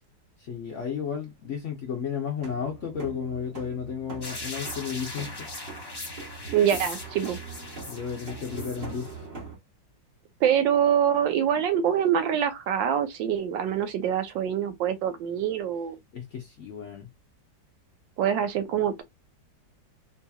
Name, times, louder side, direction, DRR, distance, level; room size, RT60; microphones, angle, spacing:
voice 1, 0.4-5.5 7.9-9.1 16.1-17.1, left 7 dB, 60° left, 0.7 m, -33 dB
sound 1, 2.4-9.6, right 4 dB, 35° right, 1.3 m, -42 dB
sound 2, 4.2-9.1, left 2 dB, 35° left, 0.3 m, -40 dB
voice 2, 6.5-7.4 10.4-16.0 18.2-19.0, right 9 dB, 85° right, 1.4 m, -25 dB
3.9 x 2.8 x 2.3 m
omnidirectional pair, 2.0 m